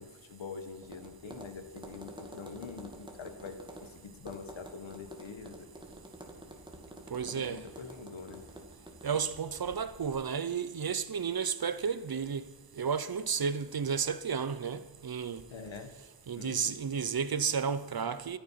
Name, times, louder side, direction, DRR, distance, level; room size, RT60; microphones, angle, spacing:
voice 1, 0.0-5.7 7.3-8.5 15.5-15.9 16.3-16.8, left 5 dB, 80° left, 1.7 m, -45 dB
Tap, 0.8-10.1, right 1 dB, 10° right, 2.3 m, -49 dB
voice 2, 7.1-7.6 9.0-12.5 12.8-15.4 16.3-18.4, right 6 dB, 50° right, 0.8 m, -32 dB
25.0 x 9.0 x 5.9 m
wide cardioid pair, 120°, 45 cm